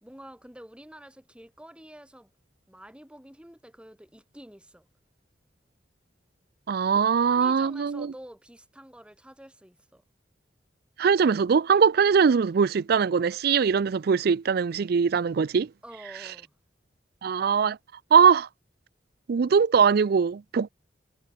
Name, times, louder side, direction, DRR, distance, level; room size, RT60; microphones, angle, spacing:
voice 1, 0.0-2.3 2.7-4.9 6.9-10.0 15.8-16.5, right 1 dB, 5° right, 3.5 m, -48 dB
voice 2, 6.7-8.1 11.0-15.7 17.2-17.8 18.1-18.5 19.3-20.7, right 6 dB, 60° right, 0.4 m, -21 dB
head